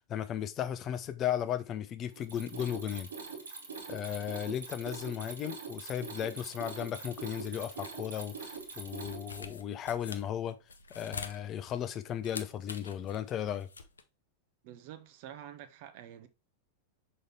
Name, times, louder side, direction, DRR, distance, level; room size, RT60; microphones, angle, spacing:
voice 1, 0.0-3.1 3.9-10.6 10.9-13.7, left 10 dB, 30° left, 0.6 m, -35 dB
Mechanisms, 2.1-9.6, right 5 dB, 70° right, 2.6 m, -43 dB
sound 1, 6.5-14.0, left 4 dB, 75° left, 0.7 m, -47 dB
voice 2, 14.6-16.3, right 10 dB, 45° right, 0.9 m, -48 dB
6.4 x 4.2 x 3.4 m
figure-of-eight pair, 90°, 0 cm